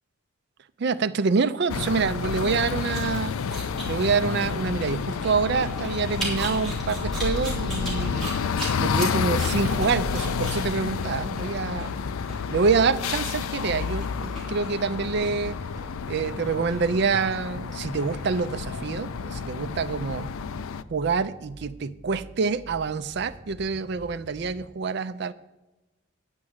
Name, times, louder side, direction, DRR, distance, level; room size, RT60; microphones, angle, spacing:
voice 1, 0.8-3.4 3.9-8.4 8.8-11.9 12.5-15.6 16.1-20.3 20.9-25.3, right 5 dB, 55° right, 11 dB, 0.4 m, -26 dB
sound 1, 1.7-20.8, left 6 dB, 90° left, 0.4 m, -30 dB
sound 2, 2.8-18.4, right 1 dB, ahead, 3.4 m, -38 dB
sound 3, 5.9-24.7, equal, 35° left, 1.3 m, -46 dB
9.6 x 6.2 x 7.9 m, 1.1 s
head